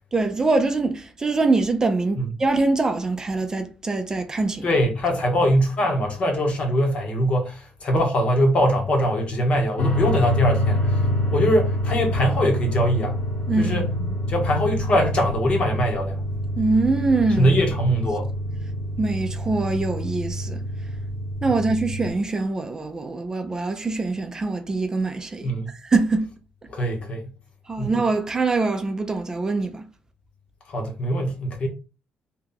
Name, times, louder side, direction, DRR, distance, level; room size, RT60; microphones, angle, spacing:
voice 1, 0.1-4.7 13.5-13.9 16.6-17.5 19.0-20.6 21.4-26.3 27.7-29.9, right 3 dB, 25° right, 0.4 m, -23 dB
voice 2, 4.6-11.0 11.3-13.2 13.6-13.9 14.3-16.2 17.4-18.3 25.4-25.7 26.7-27.3 27.8-27.9 30.7-31.7, equal, 45° left, 1.0 m, -22 dB
sound 1, 9.8-22.1, equal, 65° left, 1.3 m, -26 dB
2.7 x 2.3 x 3.8 m
cardioid pair, 110°, 3 cm